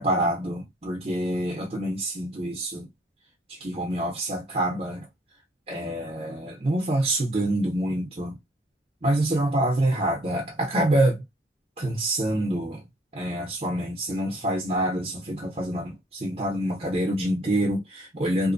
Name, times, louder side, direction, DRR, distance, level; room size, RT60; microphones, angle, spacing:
voice 1, 0.0-2.9 3.5-5.1 5.7-8.4 9.0-11.2 11.8-12.8 13.1-18.5, right 1 dB, 35° right, 0.8 m, -26 dB
2.7 x 2.1 x 2.5 m
head